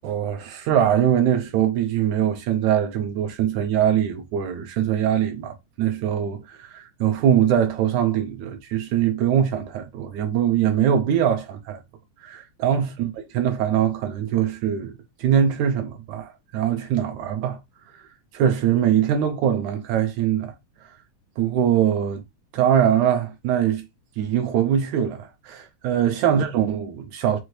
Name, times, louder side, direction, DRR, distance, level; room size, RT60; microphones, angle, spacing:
voice 1, 0.0-11.8 12.2-17.6 17.9-20.5 20.8-20.9 21.4-22.2 22.5-23.9 24.2-27.4, right 9 dB, 80° right, 2.0 m, -22 dB
6.1 x 2.6 x 3.1 m
omnidirectional pair, 3.5 m